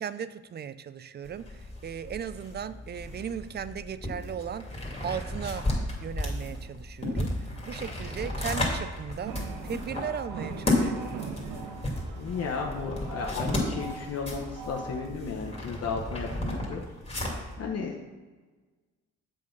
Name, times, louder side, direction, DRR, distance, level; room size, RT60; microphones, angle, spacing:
voice 1, 0.0-4.7 5.0-5.7 6.0-9.4 9.6-11.3, right 8 dB, 35° right, 14 dB, 0.4 m, -37 dB
sound 1, 1.2-17.6, left 1 dB, 20° left, 2.2 m, -33 dB
sound 2, 9.2-15.1, right 5 dB, 80° right, 0.8 m, -41 dB
voice 2, 12.2-16.8 17.1-17.3 17.6-17.9, left 5 dB, 55° left, 0 dB, 0.9 m, -34 dB
7.3 x 3.8 x 5.9 m, 1.3 s
cardioid pair, 90°, 30 cm